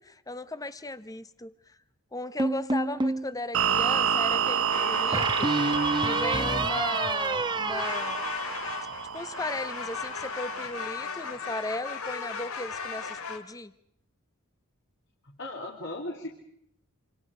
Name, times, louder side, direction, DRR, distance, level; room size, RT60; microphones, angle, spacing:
voice 1, 0.0-1.8 2.1-8.3 9.1-13.7, left 2 dB, 15° left, 13 dB, 1.0 m, -37 dB
sound 1, 2.4-3.3 5.1-8.9, right 2 dB, 20° right, 1.1 m, -29 dB
sound 2, 3.5-10.7, right 7 dB, 65° right, 1.1 m, -29 dB
sound 3, 4.7-7.3 7.6-13.4, left 5 dB, 75° left, 2.6 m, -37 dB
voice 2, 15.2-16.3, left 1 dB, 60° left, 0 dB, 3.3 m, -37 dB
27.5 x 27.0 x 5.0 m, 0.71 s
head